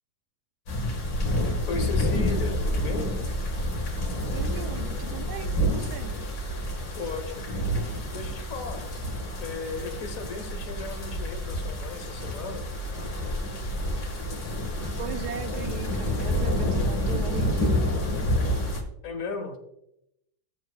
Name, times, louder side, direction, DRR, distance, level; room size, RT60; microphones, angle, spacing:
sound 1, 0.7-18.8, left 1 dB, 75° left, 2.4 m, -28 dB
voice 1, 1.7-3.1 7.0-7.4 8.1-8.9 9.4-12.7 19.0-19.6, left 4 dB, 50° left, 5 dB, 1.5 m, -35 dB
voice 2, 4.3-6.1 15.0-17.9, right 7 dB, 70° right, 8 dB, 1.2 m, -38 dB
14.5 x 7.6 x 2.3 m, 0.81 s
omnidirectional pair, 2.0 m